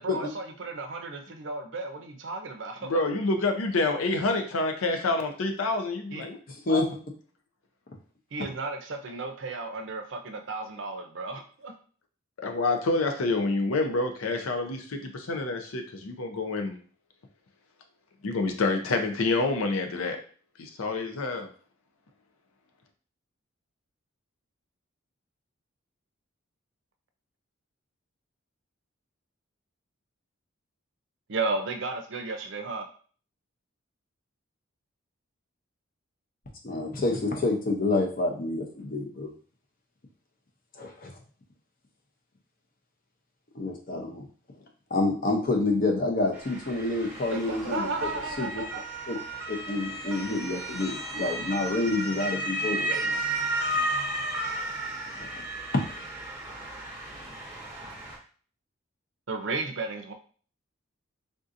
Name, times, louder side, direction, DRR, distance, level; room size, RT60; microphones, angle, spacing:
voice 1, 0.0-3.0 6.1-6.3 8.3-11.7 31.3-32.9 47.3-48.8 59.3-60.1, right 3 dB, 60° right, 5 dB, 0.5 m, -34 dB
voice 2, 2.8-6.4 6.7-6.8 12.4-16.8 18.2-20.2 20.6-21.5, left 3 dB, 90° left, 5 dB, 0.6 m, -27 dB
voice 3, 36.6-39.3 40.8-41.1 43.5-44.3 44.9-47.9 48.4-48.6 49.1-49.2 49.5-53.2 55.2-55.4, left 2 dB, 45° left, 2 dB, 0.7 m, -28 dB
Motor vehicle (road) / Siren, 46.3-58.2, right 1 dB, 10° right, 0.7 m, -33 dB
3.6 x 2.7 x 2.5 m, 0.42 s
head